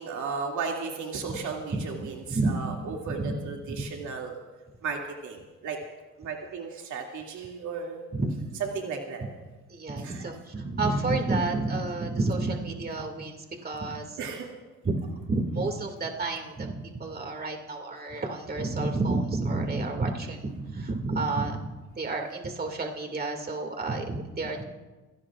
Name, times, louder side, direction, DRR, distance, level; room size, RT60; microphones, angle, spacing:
voice 1, 0.0-4.4 4.8-5.8 6.2-8.0 8.7-9.2 10.0-10.3 14.2-14.5, right 5 dB, 75° right, 0 dB, 2.5 m, -35 dB
voice 2, 2.3-2.7 3.1-3.3 3.7-3.9 8.1-8.3 9.7-14.2 14.8-15.0 15.3-21.6 22.0-24.6, right 3 dB, 30° right, 3 dB, 2.2 m, -30 dB
29.0 x 17.0 x 2.5 m, 1.2 s
cardioid pair, 90°, 30 cm